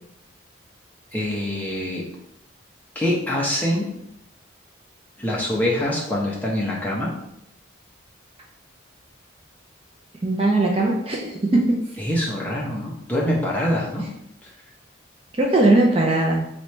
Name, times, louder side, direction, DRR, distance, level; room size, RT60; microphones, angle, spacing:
voice 1, 1.1-2.0 2.9-3.9 5.2-7.1 12.0-14.1 14.4-14.5, left 1 dB, 10° left, -4 dB, 0.8 m, -24 dB
voice 2, 10.2-11.6 15.4-16.4, right 2 dB, 30° right, -2 dB, 0.5 m, -19 dB
3.1 x 3.0 x 4.4 m, 0.76 s
head